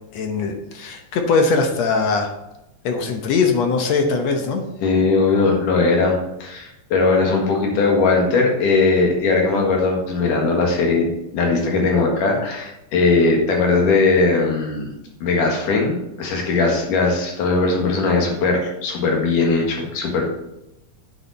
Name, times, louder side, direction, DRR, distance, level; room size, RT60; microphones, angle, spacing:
voice 1, 0.0-2.3 2.8-4.6, left 4 dB, 65° left, 4 dB, 1.9 m, -21 dB
voice 2, 4.8-14.9 15.2-20.3, left 3 dB, 85° left, 0 dB, 3.2 m, -19 dB
8.8 x 6.8 x 4.1 m, 0.90 s
omnidirectional pair, 3.6 m